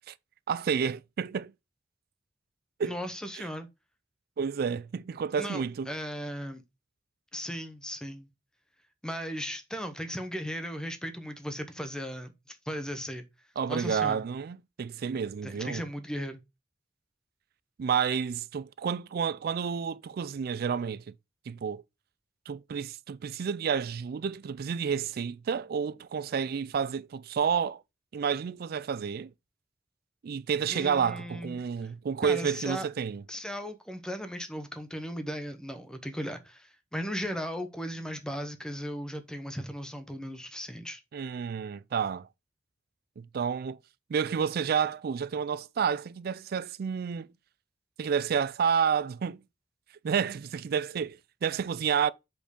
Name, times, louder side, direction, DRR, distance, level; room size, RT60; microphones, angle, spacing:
voice 1, 0.5-1.5 2.8-3.0 3.4-3.5 4.4-5.9 13.6-15.8 17.8-21.1 21.5-21.8 22.5-27.8 28.1-29.3 30.2-33.2 41.1-42.3 43.2-43.8 44.1-47.3 48.0-49.4 50.0-52.1, right 7 dB, 55° right, 0.3 m, -30 dB
voice 2, 2.8-3.7 5.3-6.6 7.3-8.3 9.0-13.2 13.7-14.2 15.4-16.4 30.7-31.6 32.2-32.9 33.3-41.0, equal, 5° left, 0.8 m, -37 dB
5.1 x 4.4 x 5.1 m
head